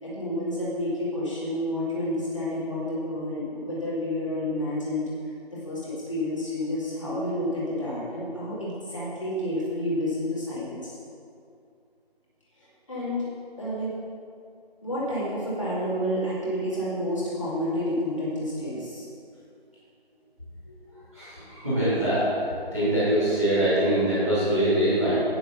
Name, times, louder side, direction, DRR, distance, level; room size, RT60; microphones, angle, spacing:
voice 1, 0.0-5.1 5.5-10.9 12.9-13.2 13.6-13.9 14.8-19.0, left 1 dB, 30° left, -8 dB, 2.5 m, -29 dB
voice 2, 21.1-22.2 22.7-25.2, right 1 dB, ahead, -18 dB, 1.9 m, -23 dB
9.1 x 6.8 x 5.5 m, 2.4 s
figure-of-eight pair, 170°, 32 cm